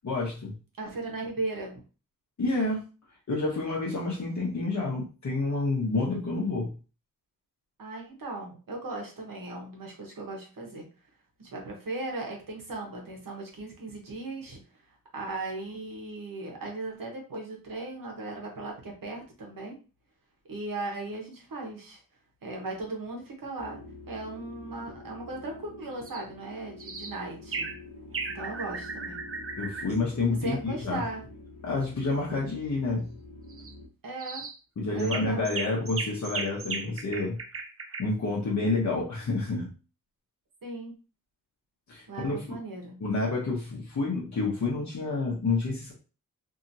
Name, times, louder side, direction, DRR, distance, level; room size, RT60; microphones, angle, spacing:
voice 1, 0.0-0.5 2.4-2.8 3.3-6.7 29.6-31.0 31.6-33.1 34.8-37.4 38.0-39.7 41.9-42.4 43.0-45.9, left 3 dB, 50° left, -4 dB, 0.9 m, -29 dB
voice 2, 0.8-1.8 7.8-10.9 11.4-14.6 15.1-19.8 20.5-22.0 22.4-27.7 28.2-29.2 30.4-31.2 34.0-34.4 34.9-35.5 38.6-38.7 40.6-40.9 42.1-43.0, right 2 dB, 70° right, 0 dB, 1.1 m, -37 dB
sound 1, 23.6-33.9, left 2 dB, 90° left, 0.8 m, -47 dB
sound 2, 26.0-26.2 26.8-27.2 27.5-27.8 28.1-30.0 33.5-33.7 34.2-34.6 35.0-38.0, right 4 dB, 40° right, 0.6 m, -36 dB
2.8 x 2.7 x 2.6 m, 0.34 s
wide cardioid pair, 95°, 35 cm